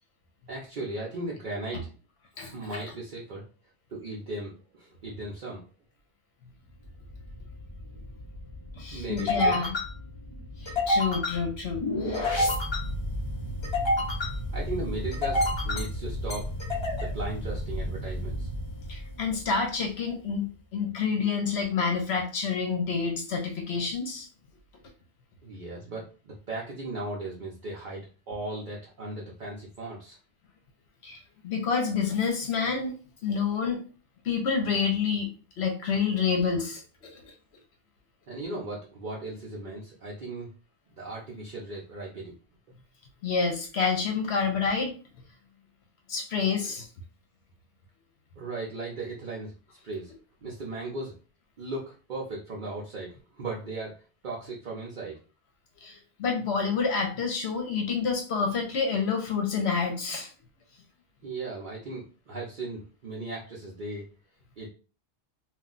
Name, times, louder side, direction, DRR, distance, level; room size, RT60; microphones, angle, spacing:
voice 1, 0.5-1.9 2.3-3.5 3.9-5.6 7.8-8.0 8.9-9.6 14.5-16.5 17.0-18.5 25.4-30.2 38.3-40.5 40.9-42.3 48.4-49.5 49.8-50.1 50.4-51.2 51.6-55.2 61.2-64.1 64.6-64.7, right 2 dB, 50° right, -4 dB, 0.7 m, -37 dB
voice 2, 2.4-2.8 8.8-9.7 10.6-12.3 18.9-20.4 20.7-24.3 31.0-32.9 33.2-33.8 34.2-35.3 35.6-37.3 43.2-44.9 46.1-46.9 55.8-60.3, left 5 dB, 70° left, 3 dB, 0.9 m, -28 dB
sound 1, 6.8-19.6, left 1 dB, 35° left, 0.5 m, -30 dB
2.4 x 2.2 x 3.7 m, 0.36 s
omnidirectional pair, 1.2 m